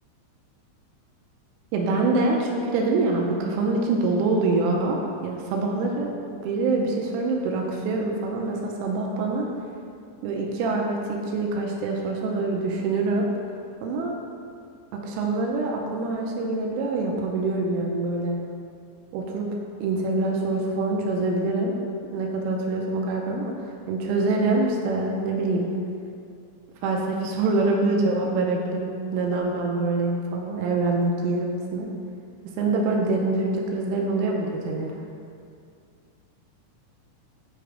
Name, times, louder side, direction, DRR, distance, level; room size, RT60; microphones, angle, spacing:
voice 1, 1.7-9.5 10.2-13.3 13.8-14.2 14.9-18.4 19.1-19.5 19.8-21.7 22.1-25.7 26.8-31.9 32.6-35.0, right 3 dB, 90° right, 0 dB, 3.3 m, -25 dB
9.6 x 3.4 x 5.0 m, 2.4 s
omnidirectional pair, 5.7 m